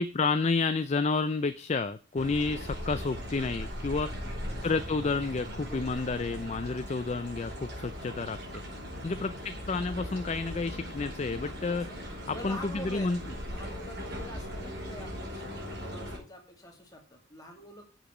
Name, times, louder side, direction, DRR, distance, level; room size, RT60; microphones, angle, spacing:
voice 1, 0.0-4.1 4.6-8.4 9.0-11.9 12.3-13.2, left 4 dB, 35° left, 11 dB, 0.4 m, -30 dB
sound 1, 2.2-16.2, equal, 65° right, 5.2 m, -39 dB
voice 2, 3.9-4.7 5.7-6.1 8.9-9.3 11.4-13.1 13.5-17.9, left 1 dB, 20° left, 1 dB, 2.3 m, -46 dB
7.9 x 6.6 x 6.0 m, 0.38 s
head